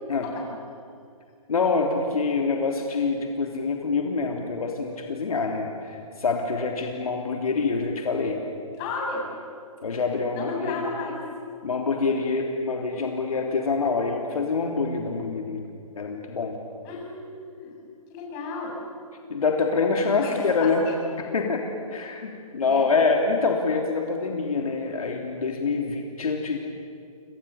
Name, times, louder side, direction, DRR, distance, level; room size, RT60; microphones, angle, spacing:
voice 1, 1.5-8.4 9.8-10.8 11.6-15.6 16.0-16.6 19.3-20.8 21.3-21.6 21.9-26.6, left 4 dB, 75° left, 2 dB, 3.4 m, -26 dB
voice 2, 8.8-9.3 10.3-11.2 16.8-17.7 18.1-18.8 20.2-20.3 20.6-21.0 22.7-22.9, left 3 dB, 30° left, -1 dB, 7.8 m, -33 dB
28.0 x 26.5 x 7.1 m, 2.3 s
hypercardioid pair, 145°, 19 cm